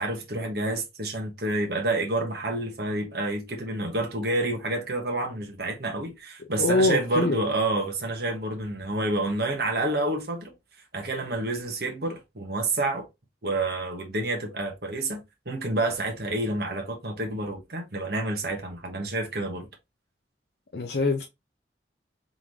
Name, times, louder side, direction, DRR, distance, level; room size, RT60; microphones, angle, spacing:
voice 1, 0.0-10.5 10.9-13.1 13.4-15.2 15.4-19.7, right 2 dB, 60° right, 1.3 m, -29 dB
voice 2, 6.6-7.4 20.7-21.2, left 3 dB, 70° left, 0.7 m, -24 dB
3.9 x 3.6 x 3.1 m
head